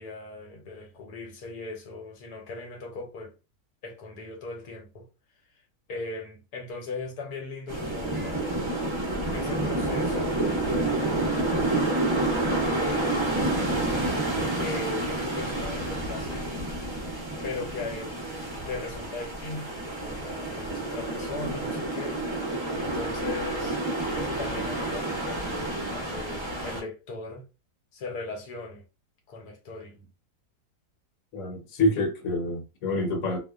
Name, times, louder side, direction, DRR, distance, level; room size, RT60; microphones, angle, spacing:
voice 1, 0.0-3.3 3.8-5.1 5.9-8.6 9.3-11.5 12.5-13.8 14.4-16.7 17.4-22.2 22.7-23.8 24.1-27.5 27.9-28.8 29.3-30.1, left 3 dB, 80° left, 1.3 m, -38 dB
sound 1, 7.7-26.8, right 2 dB, 30° right, 0.5 m, -29 dB
voice 2, 31.3-33.4, left 2 dB, 65° left, 1.1 m, -27 dB
2.7 x 2.1 x 2.3 m
omnidirectional pair, 1.7 m